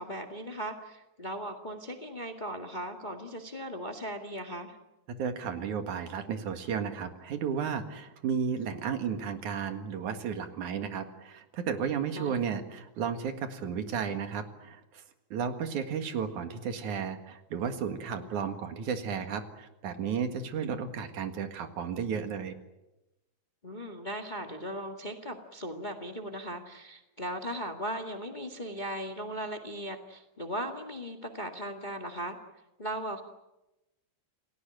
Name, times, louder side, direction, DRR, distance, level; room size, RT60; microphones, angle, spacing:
voice 1, 0.0-4.8 12.2-12.3 23.6-32.4 32.8-33.2, right 1 dB, 20° left, 4 dB, 1.5 m, -38 dB
voice 2, 5.2-15.0 15.3-22.6, right 7 dB, 75° right, 7 dB, 3.2 m, -33 dB
29.0 x 17.5 x 9.0 m, 0.97 s
omnidirectional pair, 3.5 m